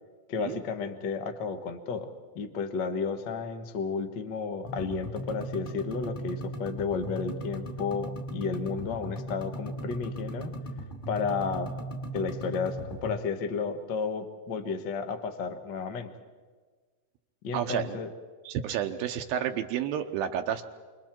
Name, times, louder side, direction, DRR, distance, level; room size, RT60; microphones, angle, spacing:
voice 1, 0.3-2.1 2.3-10.5 11.1-11.7 12.1-16.1 17.4-18.1, left 5 dB, 80° left, 7 dB, 1.0 m, -32 dB
sound 1, 4.7-13.2, right 1 dB, 20° left, 1.3 m, -37 dB
voice 2, 17.5-18.0 18.4-20.7, right 9 dB, 80° right, 5 dB, 2.5 m, -30 dB
29.0 x 26.0 x 4.5 m, 1.5 s
omnidirectional pair, 4.4 m